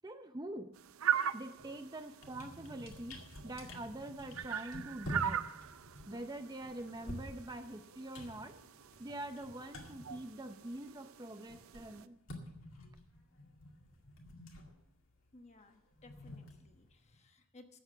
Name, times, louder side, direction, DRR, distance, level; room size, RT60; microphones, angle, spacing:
voice 1, 0.0-0.7 1.3-5.4 6.1-8.6 9.0-12.2, right 1 dB, 20° right, 7 dB, 0.5 m, -45 dB
sound 1, 0.8-12.1, right 9 dB, 80° right, 0.5 m, -41 dB
sound 2, 1.6-1.8 2.1-11.0 11.2-17.2, left 1 dB, 70° left, 2.1 m, -49 dB
voice 2, 15.3-17.8, left 2 dB, 30° left, 6 dB, 1.1 m, -60 dB
12.5 x 8.0 x 6.7 m, 0.80 s
head